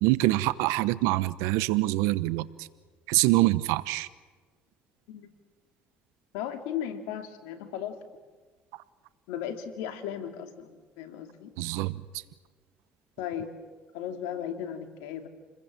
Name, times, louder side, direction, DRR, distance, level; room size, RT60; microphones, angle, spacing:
voice 1, 0.0-2.7 3.1-4.1 11.6-12.0, right 18 dB, 80° right, 17 dB, 1.0 m, -25 dB
voice 2, 6.3-8.0 9.3-11.5 13.2-13.5 13.9-15.3, left 9 dB, 85° left, 7 dB, 2.6 m, -36 dB
29.0 x 21.5 x 7.6 m, 1.4 s
supercardioid pair, 70°, 5 cm